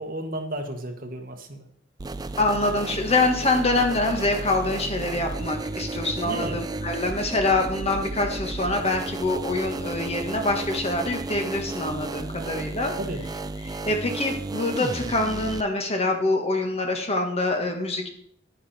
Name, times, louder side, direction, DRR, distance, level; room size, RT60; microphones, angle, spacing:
voice 1, 0.0-1.6 6.2-6.6 13.0-13.2, right 1 dB, 45° right, 5 dB, 1.5 m, -33 dB
sound 1, 2.0-15.6, right 2 dB, 20° right, 0.4 m, -33 dB
voice 2, 2.4-12.9 13.6-18.1, left 2 dB, 30° left, 4 dB, 1.6 m, -25 dB
10.5 x 10.0 x 4.4 m, 0.63 s
head